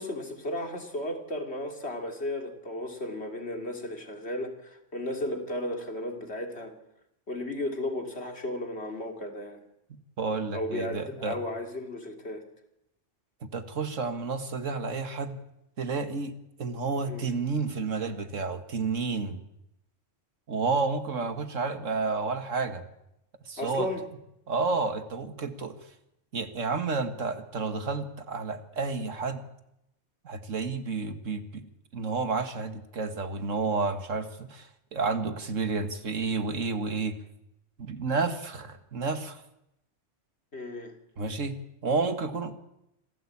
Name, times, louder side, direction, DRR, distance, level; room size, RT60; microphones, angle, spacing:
voice 1, 0.0-6.7 7.3-9.6 10.5-12.4 17.1-17.4 23.6-24.0 40.5-40.9, left 1 dB, 55° left, 5 dB, 3.2 m, -34 dB
voice 2, 10.2-11.4 13.4-15.4 15.8-19.4 20.5-22.9 23.5-23.9 24.5-25.9 26.3-29.4 30.2-31.6 31.9-37.2 37.8-39.4 41.2-41.6 41.8-42.6, right 4 dB, 90° right, 9 dB, 2.2 m, -30 dB
26.5 x 16.5 x 8.7 m, 0.83 s
omnidirectional pair, 1.3 m